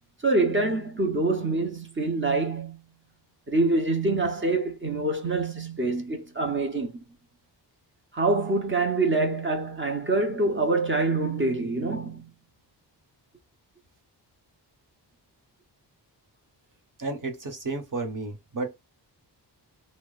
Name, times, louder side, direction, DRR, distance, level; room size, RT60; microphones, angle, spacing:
voice 1, 0.2-2.8 3.5-7.0 8.1-12.3, right 2 dB, 25° right, 0.9 m, -25 dB
voice 2, 17.0-18.7, right 3 dB, 45° right, 1.4 m, -32 dB
2.9 x 2.3 x 4.0 m
wide cardioid pair, 130°, 43 cm